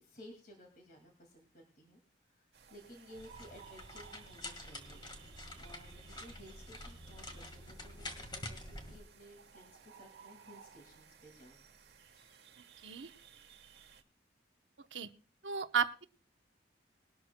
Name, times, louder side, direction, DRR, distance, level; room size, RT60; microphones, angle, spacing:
voice 1, 0.0-2.0 2.3-11.6 12.1-12.3, equal, 50° left, 3 dB, 2.1 m, -57 dB
sound 1, 2.5-14.0, right 7 dB, 65° right, 1.2 m, -59 dB
sound 2, 3.1-9.0, left 1 dB, 25° left, 1.7 m, -48 dB
voice 2, 15.4-16.1, right 6 dB, 85° right, 9 dB, 0.8 m, -33 dB
20.5 x 12.0 x 2.2 m, 0.35 s
head